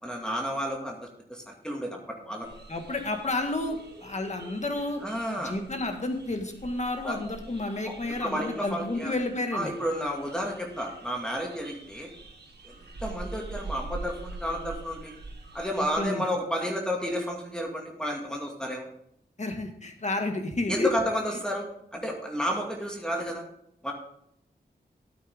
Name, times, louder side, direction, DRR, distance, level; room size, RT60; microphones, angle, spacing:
voice 1, 0.0-2.5 5.0-5.5 7.0-7.2 8.2-9.1 9.5-12.1 12.6-12.7 13.0-15.1 15.5-18.9 20.7-23.4 23.8-23.9, equal, 5° left, 0 dB, 2.1 m, -31 dB
sound 1, 2.4-16.0, right 3 dB, 70° right, 2.0 m, -45 dB
voice 2, 2.7-5.0 5.4-9.7 15.8-16.2 19.4-20.9, left 2 dB, 40° left, 4 dB, 1.8 m, -31 dB
13.0 x 8.7 x 3.6 m, 0.73 s
wide cardioid pair, 70°, 18 cm